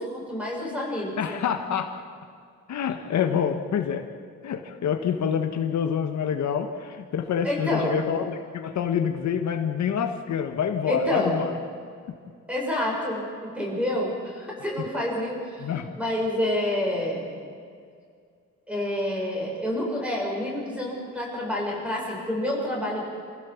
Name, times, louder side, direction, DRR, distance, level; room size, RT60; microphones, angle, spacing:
voice 1, 0.0-1.4 7.4-8.0 10.9-11.4 12.5-15.7 15.9-17.4 18.7-23.1, left 1 dB, 5° right, -2 dB, 6.7 m, -28 dB
voice 2, 1.2-1.9 2.7-4.0 4.4-11.6 15.6-15.9, left 8 dB, 70° left, 5 dB, 1.5 m, -27 dB
27.0 x 16.0 x 7.3 m, 2.2 s
wide cardioid pair, 145°, 30 cm